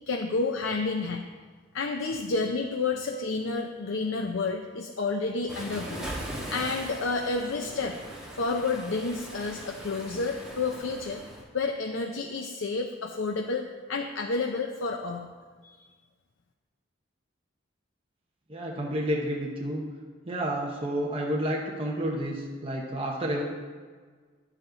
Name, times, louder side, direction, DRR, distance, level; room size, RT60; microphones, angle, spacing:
voice 1, 0.1-1.2 1.7-6.1 6.5-8.0 8.3-11.2 11.5-15.3 15.6-15.8, left 3 dB, 80° left, 3 dB, 0.6 m, -30 dB
Waves surf, 5.5-11.4, right 1 dB, 5° right, 1.6 m, -40 dB
voice 2, 18.5-19.8 20.2-23.4, equal, 30° right, -2 dB, 1.0 m, -30 dB
11.0 x 7.4 x 3.9 m, 1.5 s
head